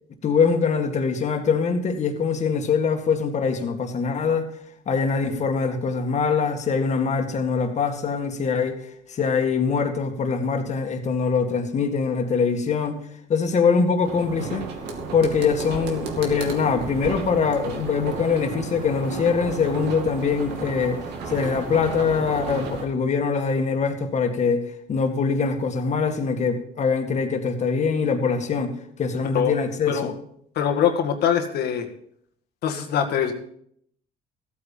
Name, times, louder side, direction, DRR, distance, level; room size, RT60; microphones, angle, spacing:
voice 1, 0.2-4.5 4.9-8.8 9.1-13.0 13.3-14.7 15.1-28.7 29.0-30.1, left 5 dB, 45° left, 2.0 m, -23 dB
sound 1, 14.0-22.9, right 4 dB, 85° right, 2.3 m, -33 dB
voice 2, 30.6-31.9 32.6-33.3, left 8 dB, 70° left, 1.8 m, -23 dB
14.5 x 8.6 x 5.6 m
cardioid pair, 110°, 17 cm